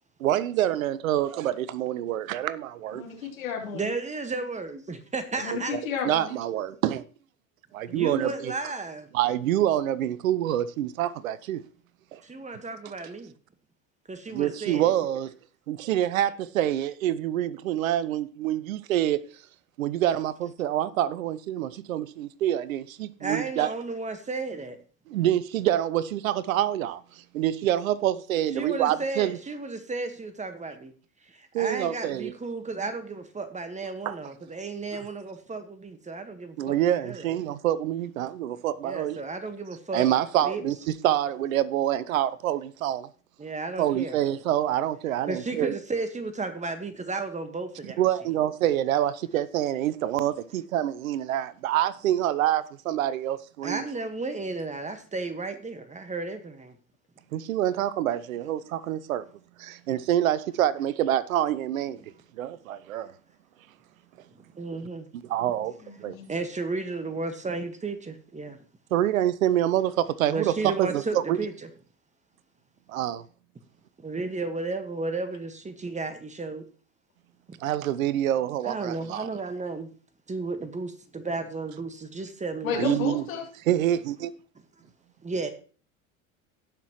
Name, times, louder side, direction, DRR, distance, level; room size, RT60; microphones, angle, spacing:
voice 1, 0.2-3.0 5.7-5.8 6.0-7.0 7.7-8.5 9.1-11.6 12.1-12.2 14.3-15.3 15.7-19.2 19.8-23.7 25.1-29.4 31.5-32.3 34.1-34.2 34.9-35.0 36.6-39.2 39.9-43.1 43.8-45.7 48.0-53.8 57.3-59.2 59.6-62.0 62.3-63.1 65.2-65.7 66.0-66.2 68.9-71.4 72.9-73.2 77.6-79.3 82.7-83.2 83.7-84.3, right 12 dB, 85° right, 0.7 m, -26 dB
voice 2, 2.9-3.9 5.4-6.4 65.8-66.3 82.6-83.4, left 7 dB, 85° left, 3.3 m, -32 dB
voice 3, 3.7-5.8 7.9-9.1 12.2-13.3 14.1-14.9 23.2-24.8 28.5-30.9 31.3-37.3 38.8-40.1 40.4-40.6 43.4-44.2 45.3-48.0 53.6-56.7 64.5-65.1 66.3-68.6 70.3-71.5 74.0-76.6 78.6-79.9 80.3-82.8 85.2-85.5, right 3 dB, 15° right, 1.5 m, -33 dB
17.5 x 5.9 x 3.1 m
hypercardioid pair, 85°, 40 cm